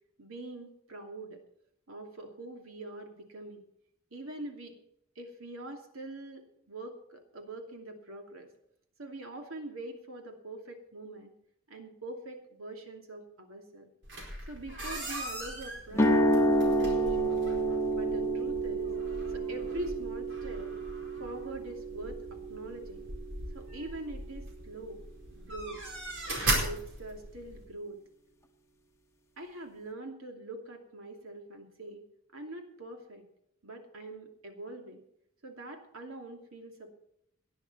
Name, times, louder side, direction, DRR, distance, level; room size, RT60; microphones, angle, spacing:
voice 1, 0.2-1.4 1.9-3.6 4.1-4.8 5.2-8.5 9.0-11.3 11.7-13.9 14.5-17.4 17.9-18.9 19.3-20.8 21.2-23.1 23.5-25.0 25.3-25.8 26.4-28.0 29.4-32.0 32.3-33.2 33.6-35.0 35.4-36.9, right 2 dB, 85° right, 4 dB, 2.7 m, -44 dB
sound 1, 14.0-27.6, right 1 dB, 60° right, 4.4 m, -39 dB
sound 2, 15.9-23.9, right 1 dB, 15° left, 1.3 m, -30 dB
18.5 x 11.0 x 4.2 m, 0.73 s
head